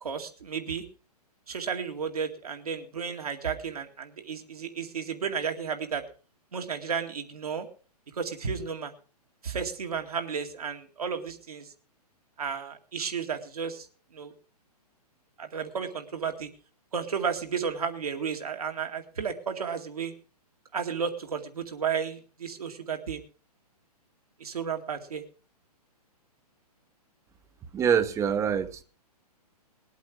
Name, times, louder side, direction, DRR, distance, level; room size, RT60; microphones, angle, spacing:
voice 1, 0.0-0.8 1.5-6.1 6.5-7.7 8.1-8.9 9.4-11.7 12.4-13.9 14.1-14.3 15.4-16.5 16.9-20.1 20.7-23.2 24.4-25.2, right 6 dB, 65° right, 5 dB, 2.3 m, -33 dB
voice 2, 27.7-28.8, right 7 dB, 15° right, 12 dB, 0.9 m, -25 dB
20.0 x 8.4 x 4.8 m, 0.38 s
figure-of-eight pair, 120°, 20 cm